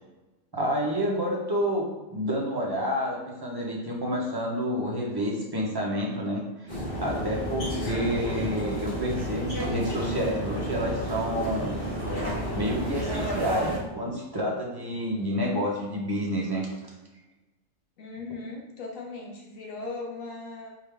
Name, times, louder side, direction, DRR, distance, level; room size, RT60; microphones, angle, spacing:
voice 1, 0.5-6.7 7.0-11.8 12.5-16.7, equal, 20° right, -3 dB, 0.7 m, -29 dB
sound 1, 6.7-13.8, equal, 40° left, 1.8 m, -31 dB
voice 2, 7.6-8.1 18.0-20.7, left 3 dB, 70° left, -1 dB, 1.3 m, -38 dB
4.2 x 3.5 x 3.4 m, 1.1 s
omnidirectional pair, 1.5 m